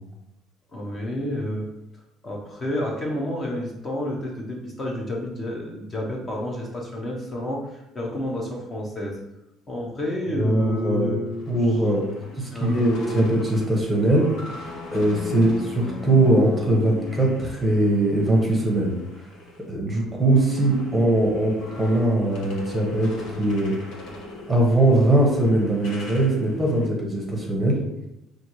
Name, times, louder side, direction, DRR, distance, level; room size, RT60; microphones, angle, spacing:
voice 1, 0.7-1.7 2.2-9.2 9.7-11.4 12.5-13.3 15.3-15.6, left 1 dB, 25° left, -2 dB, 0.7 m, -30 dB
voice 2, 10.3-11.1 11.5-12.0 12.4-14.3 14.9-18.9 19.7-23.7 24.5-27.8, right 1 dB, 5° right, -1 dB, 1.0 m, -21 dB
sound 1, 11.3-19.7 20.0-26.8, left 3 dB, 80° left, 0.9 m, -40 dB
5.3 x 2.6 x 3.0 m, 0.88 s
cardioid pair, 155°, 0 cm